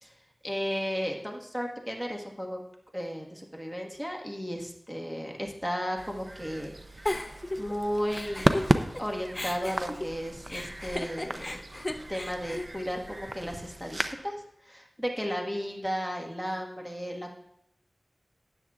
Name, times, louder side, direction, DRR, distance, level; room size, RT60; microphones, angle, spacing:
voice 1, 0.4-2.6 2.9-8.7 9.0-11.6 12.1-17.4, equal, 5° right, 0 dB, 1.5 m, -34 dB
sound 1, 6.0-14.1, right 1 dB, 40° right, 0.6 m, -33 dB
Giggle, 7.1-9.0 9.3-13.6, left 1 dB, 30° left, 0.6 m, -36 dB
12.5 x 9.0 x 2.4 m, 0.80 s
wide cardioid pair, 50°, 0 cm